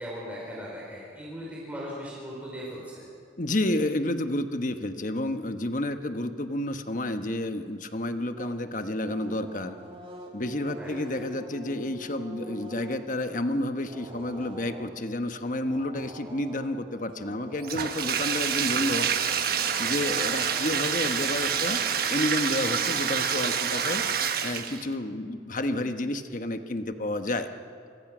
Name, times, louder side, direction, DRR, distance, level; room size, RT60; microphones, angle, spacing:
voice 1, 0.0-3.1 10.8-11.0 20.0-20.3, equal, 10° right, -5 dB, 4.2 m, -39 dB
voice 2, 3.4-9.8 10.3-19.1 19.8-21.8 22.1-24.0 24.4-27.5, left 1 dB, 45° left, 8 dB, 1.2 m, -30 dB
sound 1, 8.4-22.5, equal, 30° right, 2.8 m, -45 dB
Bathtub (filling or washing), 17.6-24.9, right 7 dB, 55° right, 1.3 m, -27 dB
27.5 x 22.0 x 6.2 m, 2.4 s
head